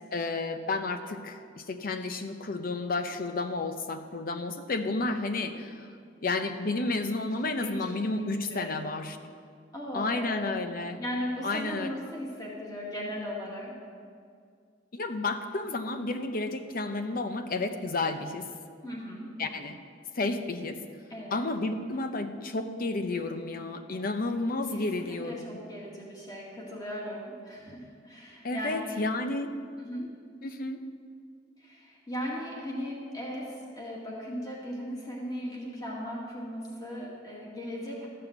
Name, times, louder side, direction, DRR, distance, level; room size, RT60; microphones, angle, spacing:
voice 1, 0.1-5.9 6.2-9.2 9.9-11.0 11.4-11.9 14.9-18.5 19.4-19.8 20.2-20.8 21.3-25.6 28.4-29.5 30.4-30.8, left 2 dB, 50° left, 8 dB, 0.8 m, -31 dB
voice 2, 7.4-8.2 8.5-8.8 9.7-10.5 11.0-13.7 18.8-19.3 21.1-21.5 24.7-29.0 29.8-30.2 31.6-38.1, equal, 20° left, -4 dB, 2.2 m, -37 dB
13.5 x 5.6 x 8.0 m, 2.2 s
head